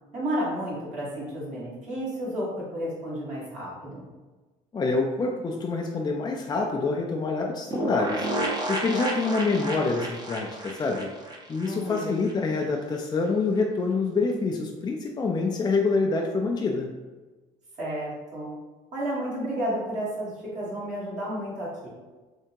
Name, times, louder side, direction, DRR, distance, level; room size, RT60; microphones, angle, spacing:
voice 1, 0.1-4.1 11.6-12.2 17.8-18.5 18.9-21.9, equal, 50° right, -6 dB, 1.3 m, -32 dB
voice 2, 4.7-8.3 8.7-11.1 11.5-16.9, left 3 dB, 25° left, 1 dB, 0.4 m, -26 dB
sound 1, 7.7-12.3 12.6-12.7 12.9-13.0, right 1 dB, 25° right, 0.7 m, -31 dB
3.4 x 2.7 x 2.8 m, 1.3 s
supercardioid pair, 70°, 16 cm